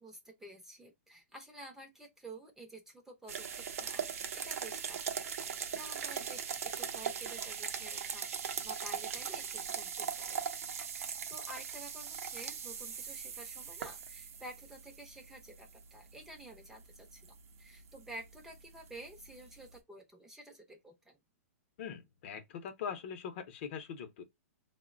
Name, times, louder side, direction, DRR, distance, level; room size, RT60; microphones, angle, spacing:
voice 1, 0.0-10.7 10.9-21.2, right 1 dB, 5° right, 0.5 m, -51 dB
sound 1, 3.3-19.8, right 7 dB, 75° right, 0.5 m, -40 dB
voice 2, 21.8-24.2, left 7 dB, 50° left, 0.6 m, -42 dB
3.7 x 2.1 x 2.4 m
hypercardioid pair, 150°, 8 cm